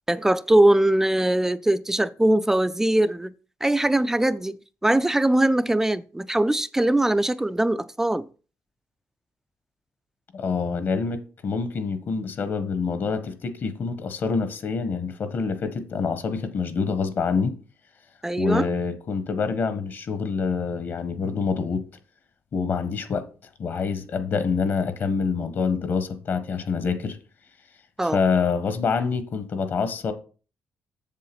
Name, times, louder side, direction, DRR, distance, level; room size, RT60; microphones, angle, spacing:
voice 1, 0.1-3.3 3.6-4.6 4.8-8.3 18.2-18.7 28.0-28.2, right 1 dB, 10° right, 0.4 m, -21 dB
voice 2, 10.3-17.5 18.4-21.9 22.5-23.3 23.6-27.2 28.0-30.1, left 5 dB, 50° left, 1.4 m, -26 dB
7.5 x 7.3 x 6.1 m
cardioid pair, 125°, 5 cm